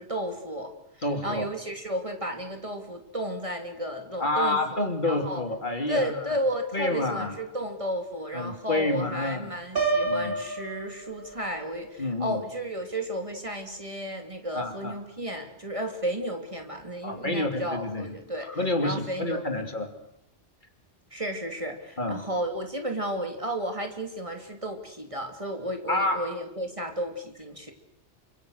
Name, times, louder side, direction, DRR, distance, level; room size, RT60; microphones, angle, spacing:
voice 1, 0.0-5.4 5.9-18.5 18.8-19.7 21.1-27.7, equal, 30° right, 4 dB, 3.0 m, -33 dB
voice 2, 1.0-1.5 4.2-6.2 6.7-7.4 8.3-9.6 10.1-10.4 12.0-12.4 14.5-14.9 17.0-18.1 18.4-19.9 22.0-22.2 25.9-26.3, left 2 dB, 45° left, 5 dB, 3.0 m, -28 dB
Piano, 9.8-11.7, right 3 dB, 50° right, 4.0 m, -29 dB
28.0 x 25.5 x 6.6 m, 0.81 s
omnidirectional pair, 1.2 m